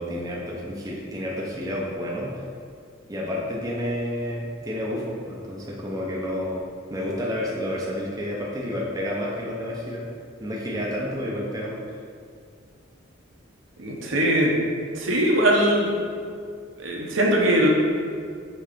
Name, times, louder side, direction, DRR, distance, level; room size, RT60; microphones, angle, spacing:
voice 1, 0.0-2.3 3.1-6.6 6.9-10.0 10.4-11.8, equal, 15° right, -4 dB, 0.7 m, -30 dB
voice 2, 13.8-14.5 14.9-15.9 16.8-17.7, right 1 dB, 75° right, -2 dB, 1.0 m, -21 dB
5.6 x 3.9 x 5.1 m, 2.2 s
head